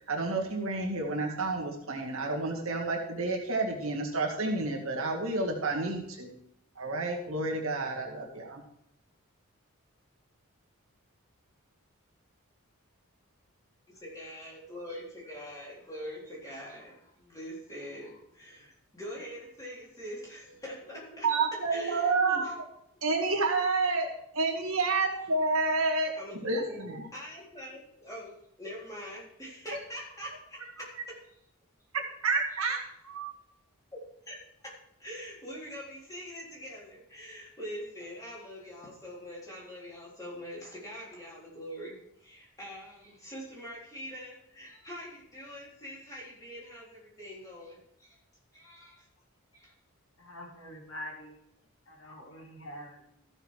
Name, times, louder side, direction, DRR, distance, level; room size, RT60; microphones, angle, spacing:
voice 1, 0.1-6.3 6.8-8.6 21.2-22.6 23.0-26.1 26.4-27.1 30.2-30.3 31.9-33.3, right 3 dB, 70° right, 0 dB, 2.2 m, -30 dB
voice 2, 13.9-21.3 21.7-22.5 26.2-31.1 33.9-34.7 35.0-48.2 48.5-49.0 49.5-49.7, equal, 15° left, -5 dB, 3.7 m, -44 dB
voice 3, 50.2-51.4 51.9-53.3, equal, 60° left, 1 dB, 2.2 m, -45 dB
14.0 x 6.6 x 4.9 m, 0.74 s
head